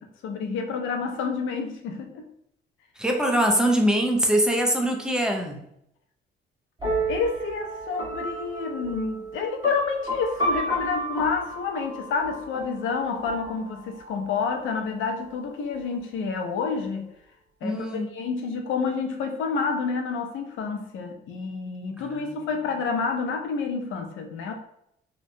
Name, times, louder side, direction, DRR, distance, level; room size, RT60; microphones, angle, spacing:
voice 1, 0.0-2.3 7.1-17.1 17.6-24.5, left 5 dB, 80° left, 4 dB, 0.5 m, -29 dB
voice 2, 3.0-5.6 17.6-18.1 22.0-22.4, right 1 dB, 5° right, 2 dB, 0.5 m, -23 dB
sound 1, 6.8-14.4, right 1 dB, 20° right, 1.2 m, -32 dB
2.8 x 2.2 x 2.6 m, 0.74 s
cardioid pair, 90°, 20 cm